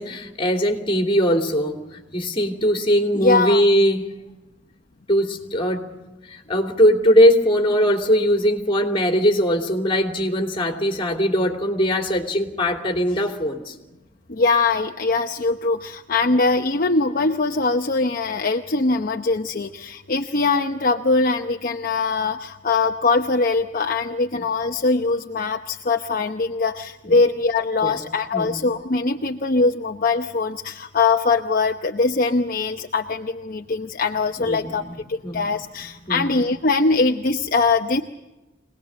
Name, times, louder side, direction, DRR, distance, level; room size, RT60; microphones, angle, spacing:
voice 1, 0.0-1.8 2.1-4.2 5.1-5.9 6.3-13.7 27.0-27.2 27.8-28.0 28.3-28.6 34.4-34.9 35.2-35.5 36.1-36.3, equal, 30° left, 3 dB, 3.0 m, -20 dB
voice 2, 3.1-3.6 14.3-34.8 35.1-38.0, left 3 dB, 50° left, 5 dB, 0.8 m, -22 dB
24.0 x 19.5 x 7.8 m, 1.0 s
head